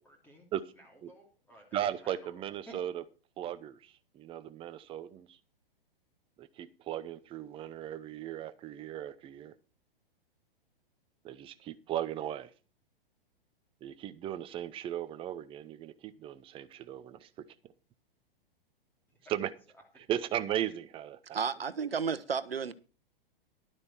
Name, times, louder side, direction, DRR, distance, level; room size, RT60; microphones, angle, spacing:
voice 1, 0.0-0.5 0.8-2.3 2.7-2.8 19.2-19.3 19.9-20.0, right 1 dB, 5° left, 0 dB, 3.1 m, -54 dB
voice 2, 1.7-3.0 3.4-5.4 6.4-9.5 11.2-12.5 13.8-17.5 19.3-19.5 20.1-21.4, right 11 dB, 20° right, 14 dB, 0.7 m, -37 dB
voice 3, 21.3-22.7, right 6 dB, 80° right, 14 dB, 1.0 m, -32 dB
12.0 x 9.6 x 4.6 m, 0.36 s
figure-of-eight pair, 110°, 29 cm